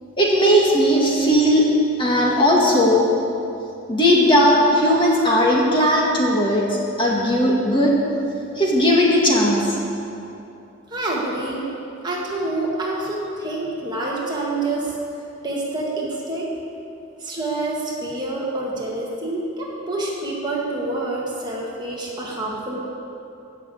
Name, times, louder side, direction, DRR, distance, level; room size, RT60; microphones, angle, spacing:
voice 1, 0.2-1.7 2.0-3.1 3.9-6.7 7.0-8.0 8.6-9.6, equal, 25° left, -3 dB, 2.0 m, -17 dB
voice 2, 10.9-11.7 12.0-15.0 15.4-16.5 17.2-22.8, right 2 dB, 20° right, -4 dB, 1.9 m, -27 dB
15.5 x 6.7 x 8.6 m, 2.8 s
head